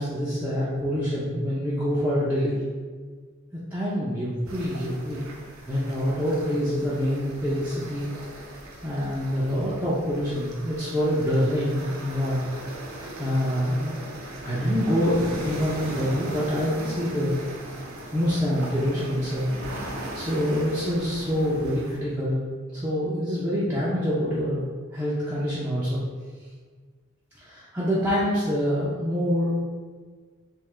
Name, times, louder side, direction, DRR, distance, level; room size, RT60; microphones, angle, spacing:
voice 1, 0.0-2.6 3.5-5.2 5.7-8.1 8.8-12.4 13.2-14.0 14.4-17.4 18.1-22.4 22.7-24.6 24.9-26.0 27.4-29.5, equal, 10° right, -10 dB, 0.5 m, -26 dB
sound 1, 4.5-22.0, right 1 dB, 90° right, 0.7 m, -38 dB
3.6 x 3.0 x 3.2 m, 1.5 s
head